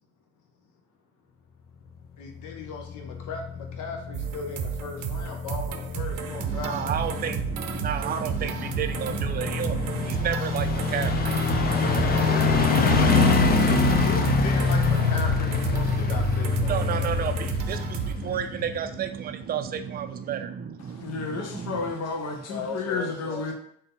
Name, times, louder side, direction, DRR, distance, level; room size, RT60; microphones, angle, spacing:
voice 1, 2.2-6.9 14.0-17.1 22.5-23.5, left 4 dB, 85° left, 3 dB, 0.9 m, -37 dB
sound 1, 2.5-19.1 19.4-19.5, left 4 dB, 30° left, 0.6 m, -25 dB
sound 2, 4.1-18.1, right 9 dB, 85° right, 0.5 m, -33 dB
voice 2, 6.4-12.2 16.5-21.9, right 8 dB, 30° right, 8 dB, 0.4 m, -32 dB
voice 3, 20.9-23.5, left 4 dB, 60° left, 2 dB, 0.9 m, -31 dB
3.6 x 2.8 x 3.8 m, 0.66 s
cardioid pair, 90°, 30 cm